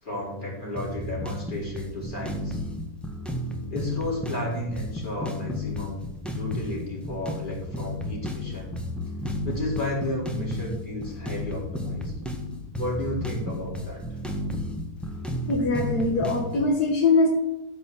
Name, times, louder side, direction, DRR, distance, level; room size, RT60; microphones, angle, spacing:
voice 1, 0.0-2.6 3.7-8.7 9.4-12.1 12.7-14.0, left 1 dB, 30° left, -3 dB, 4.2 m, -33 dB
sound 1, 0.8-16.7, left 1 dB, ahead, 1.4 m, -32 dB
voice 2, 15.5-17.3, left 3 dB, 75° left, 1 dB, 2.0 m, -22 dB
13.5 x 5.4 x 7.5 m, 0.97 s
omnidirectional pair, 1.7 m